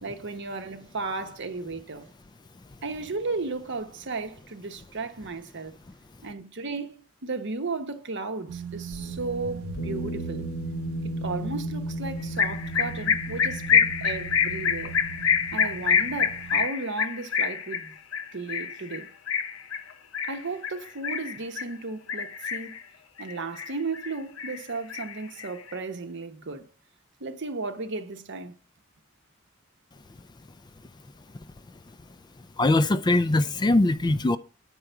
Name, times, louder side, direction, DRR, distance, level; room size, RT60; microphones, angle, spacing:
voice 1, 0.0-2.1 2.8-5.7 6.2-10.5 11.2-15.0 15.5-18.0 18.3-19.1 20.2-22.8 23.2-26.7 27.2-28.6, right 3 dB, 60° right, 1.0 m, -34 dB
sound 1, 8.5-16.7, right 8 dB, 80° right, 0.4 m, -40 dB
sound 2, 8.9-16.3, equal, 60° left, 1.1 m, -36 dB
sound 3, 12.4-21.7 22.1-22.8 23.2-24.1 24.4-25.7, left 7 dB, 80° left, 0.8 m, -26 dB
voice 2, 32.6-34.4, left 2 dB, 20° left, 0.3 m, -21 dB
9.0 x 4.8 x 6.7 m
head